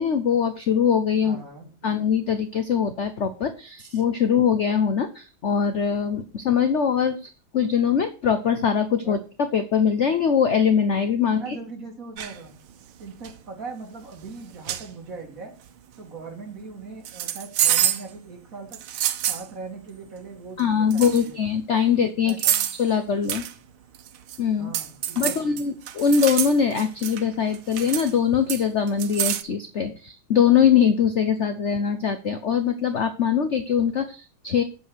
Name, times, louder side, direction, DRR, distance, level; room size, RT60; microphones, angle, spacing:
voice 1, 0.0-1.4 1.8-9.2 9.5-11.6 20.6-22.5 22.8-23.4 24.4-24.7 25.2-34.6, left 7 dB, 55° left, 9 dB, 0.7 m, -22 dB
voice 2, 1.2-1.7 9.0-9.2 11.3-12.5 13.0-15.5 16.0-18.8 19.3-21.4 22.2-22.7 24.6-25.6, right 4 dB, 40° right, 2 dB, 3.0 m, -40 dB
sound 1, 12.2-12.4 13.0-13.3 14.2-14.3 14.7-14.9 17.0-18.1 18.7-19.5 20.6-20.7 20.9-21.3 22.3-22.8 23.3-23.5 23.9-24.4 24.7-27.2 27.5-28.1 28.5-29.4, right 11 dB, 85° right, 1.8 m, -26 dB
8.9 x 7.7 x 6.2 m, 0.34 s
omnidirectional pair, 2.4 m